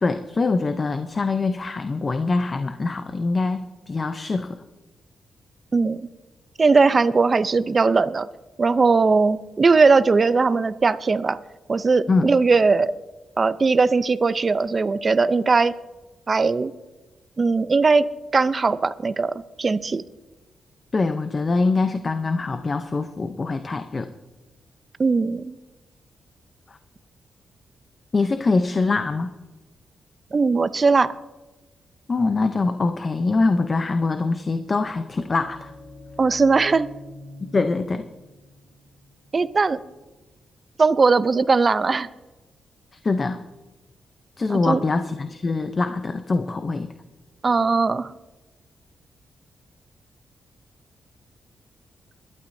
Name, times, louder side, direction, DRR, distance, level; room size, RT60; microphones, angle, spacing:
voice 1, 0.0-4.6 12.1-12.3 20.9-24.1 26.7-26.8 28.1-29.3 32.1-35.7 37.4-38.1 43.0-43.4 44.4-46.9, left 3 dB, 35° left, 9 dB, 0.6 m, -23 dB
voice 2, 6.6-8.3 8.6-11.4 11.7-12.9 13.4-15.7 16.3-16.7 17.4-18.0 18.3-20.0 25.0-25.6 30.3-31.1 36.2-36.9 39.3-39.8 40.8-42.1 44.5-44.8 47.4-48.1, right 4 dB, 35° right, 15 dB, 0.5 m, -19 dB
sound 1, 34.7-40.4, left 1 dB, 60° left, 2.8 m, -46 dB
22.0 x 11.5 x 2.7 m, 1.1 s
cardioid pair, 115°, 0 cm